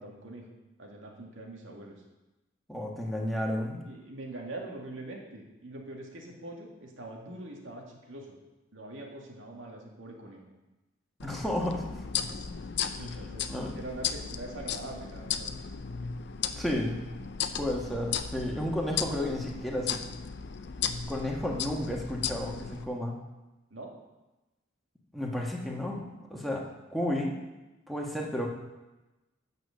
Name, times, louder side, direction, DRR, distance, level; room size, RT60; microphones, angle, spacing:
voice 1, 0.0-2.0 3.8-8.4 8.7-10.4 13.0-15.5 23.7-23.9, right 2 dB, 85° right, 0 dB, 2.1 m, -43 dB
voice 2, 2.7-3.8 11.2-11.9 12.8-12.9 13.5-13.7 16.6-17.0 17.6-20.0 21.1-23.2 25.1-26.6 26.9-27.3 27.9-28.5, left 1 dB, ahead, -2 dB, 1.4 m, -32 dB
sound 1, 11.2-22.8, left 7 dB, 60° left, 0.6 m, -36 dB
9.1 x 6.6 x 6.4 m, 1.1 s
head